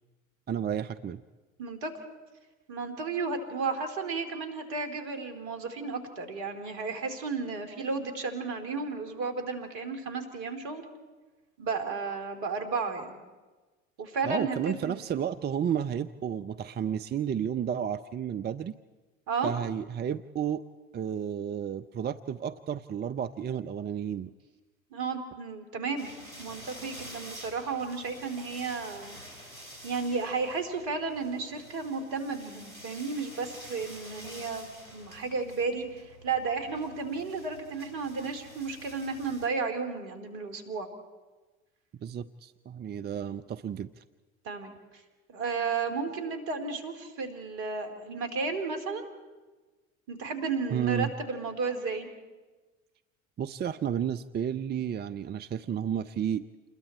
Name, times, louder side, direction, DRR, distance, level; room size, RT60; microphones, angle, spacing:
voice 1, 0.5-1.2 14.2-18.7 19.4-20.6 20.9-24.3 42.0-44.0 50.7-51.1 53.4-56.4, right 8 dB, 25° right, 12 dB, 0.6 m, -32 dB
voice 2, 1.6-1.9 2.7-10.9 11.6-13.2 14.0-15.0 19.3-19.5 24.9-26.1 26.4-29.2 29.8-40.9 44.4-44.7 45.3-49.0 50.1-52.1, right 4 dB, 60° right, 6 dB, 3.4 m, -33 dB
sound 1, 26.0-39.5, equal, 90° right, 4.2 m, -48 dB
28.5 x 21.5 x 4.5 m, 1.3 s
figure-of-eight pair, 65°, 40 cm